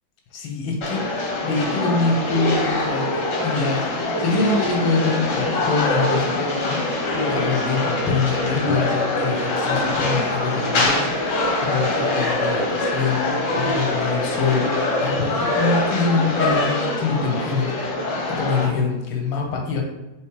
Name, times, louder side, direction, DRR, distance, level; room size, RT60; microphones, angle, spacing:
voice 1, 0.3-14.7 15.0-17.9 18.3-19.8, left 4 dB, 85° left, 1 dB, 1.5 m, -25 dB
sound 1, 0.8-18.7, left 2 dB, 60° left, 0.8 m, -23 dB
4.5 x 2.9 x 3.2 m, 1.0 s
omnidirectional pair, 2.2 m